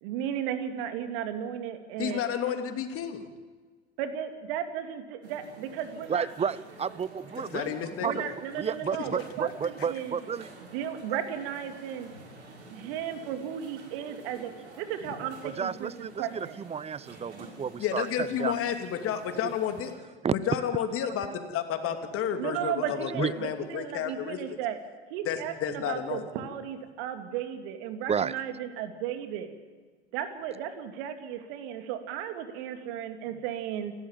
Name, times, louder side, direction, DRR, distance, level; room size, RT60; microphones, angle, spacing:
voice 1, 0.0-2.2 4.0-6.3 8.0-10.2 10.7-12.1 12.7-15.9 16.2-16.6 22.4-24.8 25.1-29.5 30.1-33.9, right 9 dB, 60° right, 7 dB, 2.7 m, -35 dB
voice 2, 2.0-3.2 7.5-8.3 15.0-15.1 17.8-19.9 20.3-24.4 25.2-26.2, left 9 dB, 45° left, 6 dB, 2.8 m, -31 dB
sound 1, 5.2-19.9, right 2 dB, 80° right, 7.1 m, -50 dB
voice 3, 6.1-7.7 8.0-8.1 8.6-10.5 15.4-17.3 17.6-18.6 20.2-20.4 21.0-21.3 23.1-23.3 28.1-28.3, right 7 dB, 20° right, 20 dB, 0.7 m, -31 dB
28.0 x 13.0 x 7.5 m, 1.4 s
hypercardioid pair, 80°, 33 cm